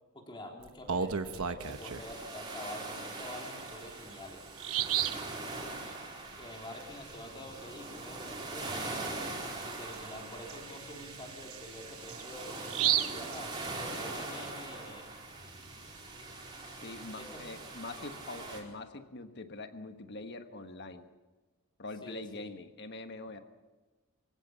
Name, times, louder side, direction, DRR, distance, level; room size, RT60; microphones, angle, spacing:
voice 1, 0.1-4.4 6.4-9.1 9.6-13.5 14.0-15.1 17.2-17.4 22.0-22.5, left 1 dB, 20° left, 1 dB, 3.7 m, -47 dB
Bird vocalization bird call bird song, 0.6-2.1 3.6-3.7 4.1-4.2 4.6-5.3 8.8-8.9 9.3-9.4 9.9-14.2, right 9 dB, 70° right, 1.0 m, -34 dB
sound 1, 1.6-18.6, right 2 dB, 20° right, 4.4 m, -42 dB
voice 2, 16.8-21.1 21.8-23.4, left 2 dB, 50° left, 7 dB, 1.4 m, -44 dB
25.0 x 16.0 x 7.2 m, 1.2 s
head